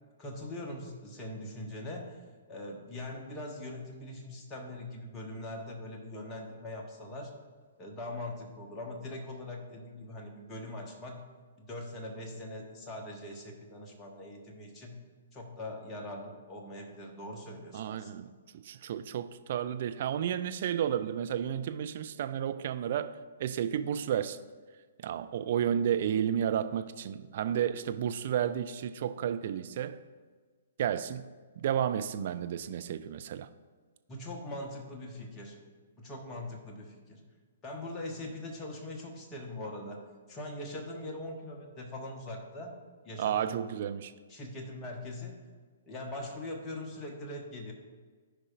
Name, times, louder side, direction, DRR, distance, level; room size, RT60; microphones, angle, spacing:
voice 1, 0.2-2.2 2.5-7.3 7.8-11.2 11.6-15.0 15.3-18.1 34.1-35.6 36.0-37.2 37.6-42.8 43.0-43.6 44.3-45.5 45.8-47.7, left 1 dB, 20° left, 1.2 m, -42 dB
voice 2, 17.7-24.4 25.0-30.0 30.8-31.3 31.6-33.5 43.2-44.1, right 9 dB, 45° right, 0.4 m, -32 dB
13.5 x 5.0 x 2.5 m
figure-of-eight pair, 120°, 0 cm